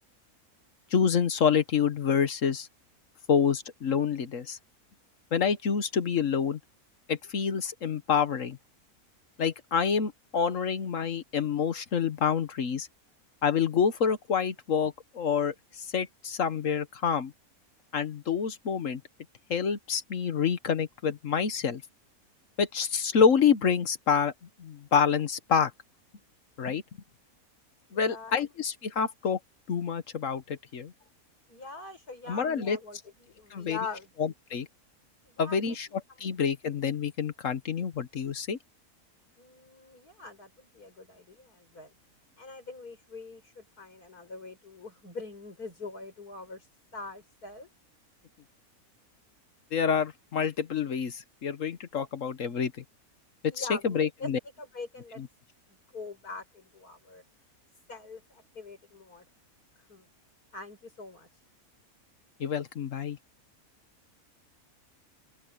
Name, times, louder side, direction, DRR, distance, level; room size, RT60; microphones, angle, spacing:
voice 1, 0.9-2.7 3.3-4.6 5.3-6.6 7.1-8.6 9.4-12.9 13.4-17.3 17.9-19.0 19.5-21.8 22.6-24.3 24.6-25.7 26.6-26.8 27.9-29.4 29.7-30.9 32.3-32.8 33.5-33.8 34.2-34.7 35.4-38.6 49.7-52.8 53.5-54.4 55.2-55.3 62.4-63.2, left 6 dB, 60° left, 1.4 m, -27 dB
voice 2, 27.9-28.5 31.5-34.1 35.2-35.6 39.4-42.0 42.4-46.7 46.9-47.7 53.5-54.3 54.6-55.2 55.9-57.2 57.9-59.2 59.9-60.1 60.5-61.3, left 3 dB, 85° left, 6.0 m, -43 dB
open air
omnidirectional pair, 1.6 m